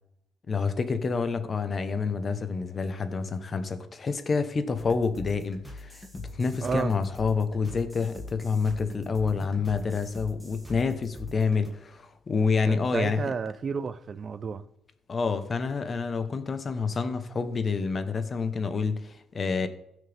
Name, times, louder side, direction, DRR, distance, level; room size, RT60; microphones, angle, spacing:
voice 1, 0.5-13.2 15.1-19.7, left 5 dB, 40° left, 1.1 m, -28 dB
sound 1, 4.8-11.7, left 1 dB, ahead, 2.5 m, -43 dB
voice 2, 6.6-6.9 12.7-14.6, right 5 dB, 45° right, 0.7 m, -31 dB
15.5 x 6.5 x 3.6 m
cardioid pair, 90°, 0 cm